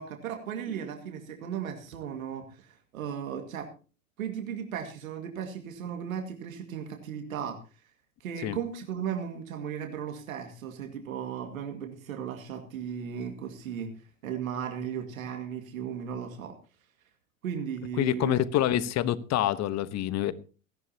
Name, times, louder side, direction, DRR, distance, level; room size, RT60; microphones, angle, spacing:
voice 1, 0.0-3.7 4.2-7.6 8.2-16.5 17.4-18.5, right 8 dB, 80° right, 2.2 m, -36 dB
voice 2, 18.0-20.3, left 12 dB, 40° left, 1.2 m, -26 dB
18.5 x 14.0 x 2.9 m
hypercardioid pair, 85°, 41 cm